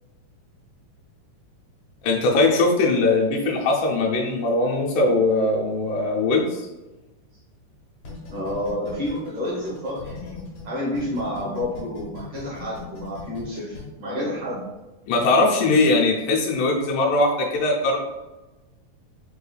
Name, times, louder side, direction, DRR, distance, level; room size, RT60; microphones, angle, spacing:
voice 1, 2.0-6.7 15.1-18.0, left 2 dB, 90° left, -1 dB, 2.2 m, -20 dB
sound 1, 8.0-10.6 11.0-13.8, left 4 dB, 65° left, 2.4 m, -39 dB
voice 2, 8.3-14.6, left 1 dB, 85° right, -6 dB, 0.9 m, -30 dB
5.3 x 3.2 x 2.3 m, 1.1 s
omnidirectional pair, 3.6 m